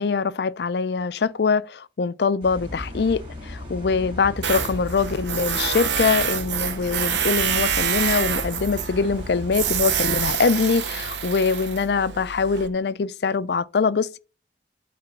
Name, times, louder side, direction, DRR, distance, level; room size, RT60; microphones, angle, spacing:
voice 1, 0.0-14.2, left 5 dB, 70° left, 0.4 m, -23 dB
sound 1, 2.4-10.3, left 1 dB, 30° right, 2.7 m, -36 dB
Tools, 4.4-12.7, right 8 dB, 85° right, 0.8 m, -27 dB
8.9 x 3.3 x 5.4 m
head